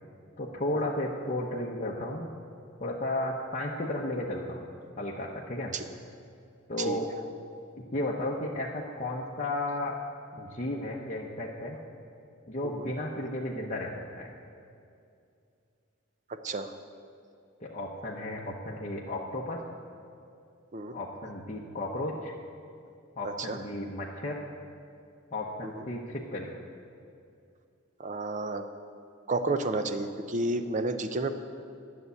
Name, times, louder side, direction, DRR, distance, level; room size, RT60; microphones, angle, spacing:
voice 1, 0.4-2.3 2.8-4.6 5.0-5.7 6.7-7.1 7.8-10.0 10.3-11.8 12.5-14.3 17.6-19.6 20.9-22.3 23.2-24.4 25.3-26.6, left 1 dB, 35° left, -3 dB, 0.9 m, -34 dB
voice 2, 23.2-23.6 25.8-25.9 28.0-28.6 29.3-31.3, right 2 dB, 35° right, 9 dB, 0.6 m, -31 dB
11.0 x 6.8 x 9.4 m, 2.5 s
head